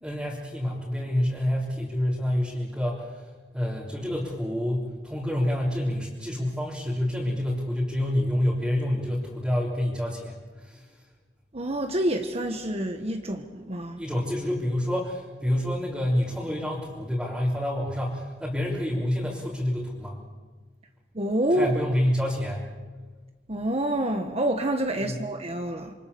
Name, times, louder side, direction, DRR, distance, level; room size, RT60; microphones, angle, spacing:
voice 1, 0.0-3.3 3.5-10.8 14.0-20.2 21.5-22.6 25.0-25.2, left 1 dB, 5° right, -6 dB, 3.8 m, -28 dB
voice 2, 11.5-14.0 21.1-21.7 23.5-25.9, right 1 dB, 35° right, 5 dB, 1.4 m, -27 dB
27.0 x 25.0 x 7.0 m, 1.4 s
head